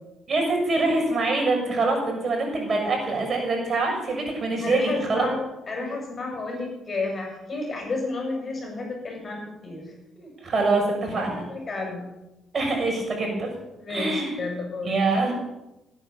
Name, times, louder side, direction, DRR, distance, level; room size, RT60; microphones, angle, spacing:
voice 1, 0.3-5.3 10.4-11.4 12.5-13.5 13.9-14.3 14.8-15.3, right 3 dB, 40° right, 1 dB, 6.9 m, -24 dB
voice 2, 4.6-10.5 11.1-12.0 13.8-14.9, left 3 dB, 40° left, 1 dB, 7.5 m, -32 dB
17.0 x 10.0 x 7.2 m, 0.96 s
cardioid pair, 90°, 0 cm